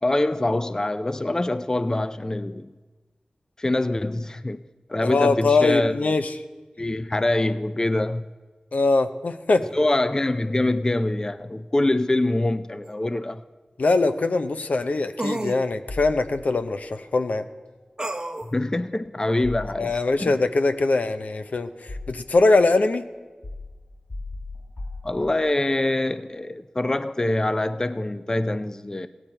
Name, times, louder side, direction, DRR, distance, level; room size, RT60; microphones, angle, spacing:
voice 1, 0.0-2.7 3.6-4.6 4.9-6.1 6.8-8.3 9.7-13.4 18.5-19.9 20.2-20.3 25.0-29.1, left 2 dB, 25° left, 0.4 m, -24 dB
voice 2, 5.0-6.4 8.7-9.7 13.8-17.4 19.8-23.0, left 3 dB, 75° left, 0.6 m, -22 dB
sound 1, 12.8-12.9 15.2-15.6 18.0-18.5, right 1 dB, 30° right, 0.7 m, -29 dB
sound 2, 15.9-16.8 19.4-20.3 21.2-22.5 23.4-25.7, left 2 dB, 45° left, 1.6 m, -38 dB
16.5 x 8.8 x 4.4 m
wide cardioid pair, 60°, 3 cm